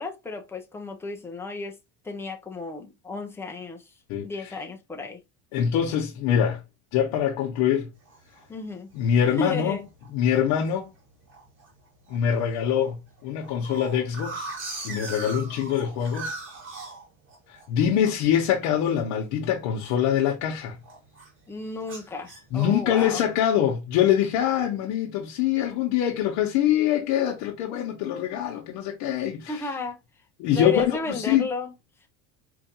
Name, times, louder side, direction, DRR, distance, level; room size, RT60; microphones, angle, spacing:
voice 1, 0.0-1.8 2.0-3.8 4.2-5.2 8.5-8.9 9.4-9.9 21.5-23.2 29.5-30.0 30.5-31.7, left 3 dB, 5° left, 0.4 m, -33 dB
voice 2, 4.1-4.5 5.5-6.6 6.9-7.9 8.9-9.8 10.1-10.9 12.1-14.5 14.8-16.3 17.5-20.8 22.5-29.7 30.4-31.5, left 9 dB, 65° left, 0.9 m, -24 dB
sound 1, 8.1-8.5 9.0-9.1 9.3-9.7 10.0-10.7 11.3-11.7 12.0-12.2 12.4-12.5 12.8-17.7 18.0-20.5 20.8-21.4 21.8-23.2, right 3 dB, 30° right, 1.6 m, -39 dB
4.5 x 2.5 x 2.8 m
cardioid pair, 140°, 39 cm